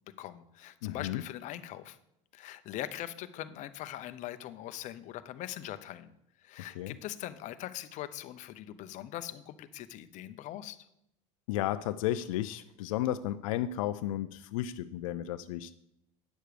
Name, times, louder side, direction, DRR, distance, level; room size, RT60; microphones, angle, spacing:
voice 1, 0.2-2.0 2.3-6.1 6.4-10.8, left 13 dB, 45° left, 12 dB, 0.7 m, -41 dB
voice 2, 0.8-1.2 6.8-7.0 11.5-15.7, left 13 dB, 85° left, 12 dB, 0.4 m, -33 dB
9.1 x 6.6 x 5.0 m, 0.81 s
supercardioid pair, 115°, 17 cm